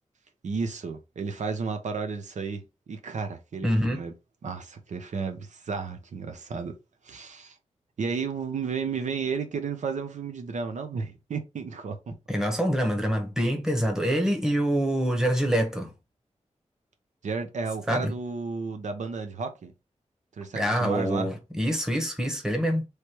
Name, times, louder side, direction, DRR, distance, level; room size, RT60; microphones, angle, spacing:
voice 1, 0.4-2.6 2.9-4.1 4.4-6.7 7.0-7.6 8.0-12.1 17.2-19.7 20.4-21.3, right 5 dB, 80° right, 0.8 m, -32 dB
voice 2, 3.6-4.0 12.3-15.9 17.9-18.1 20.5-22.9, equal, 5° right, 1.0 m, -25 dB
3.3 x 3.2 x 4.4 m
wide cardioid pair, 150°, 12 cm